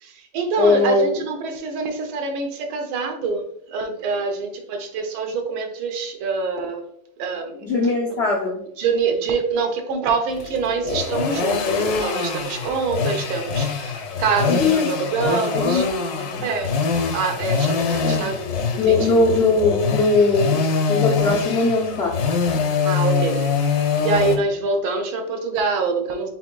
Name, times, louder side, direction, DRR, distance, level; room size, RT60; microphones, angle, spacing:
voice 1, 0.0-3.4 3.7-6.8 7.2-7.6 8.8-15.9 16.4-16.8 17.1-19.2 22.8-26.3, right 4 dB, 90° right, 4 dB, 1.6 m, -25 dB
voice 2, 0.6-1.1 7.6-8.6 14.5-14.9 15.5-15.9 16.2-16.4 18.0-18.3 18.8-20.6 20.9-22.3, left 3 dB, 90° left, -3 dB, 0.5 m, -20 dB
sound 1, 10.3-24.4, left 5 dB, 65° left, 1.0 m, -24 dB
6.0 x 3.8 x 2.2 m, 0.71 s
omnidirectional pair, 2.2 m